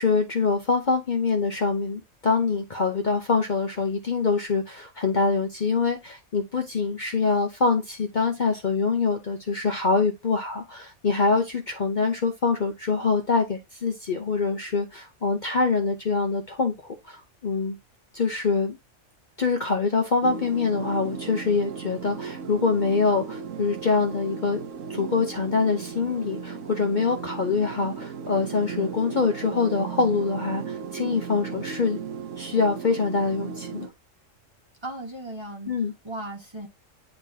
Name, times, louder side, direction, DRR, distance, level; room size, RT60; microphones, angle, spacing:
voice 1, 0.0-17.8 18.1-18.8 19.4-24.6 24.9-32.0 32.4-33.9 35.7-35.9, left 4 dB, 40° left, 0.8 m, -25 dB
sound 1, 20.2-33.9, right 6 dB, 70° right, 1.1 m, -36 dB
voice 2, 34.8-35.7 36.0-36.7, right 1 dB, 20° right, 1.2 m, -36 dB
10.0 x 3.7 x 2.8 m
omnidirectional pair, 1.4 m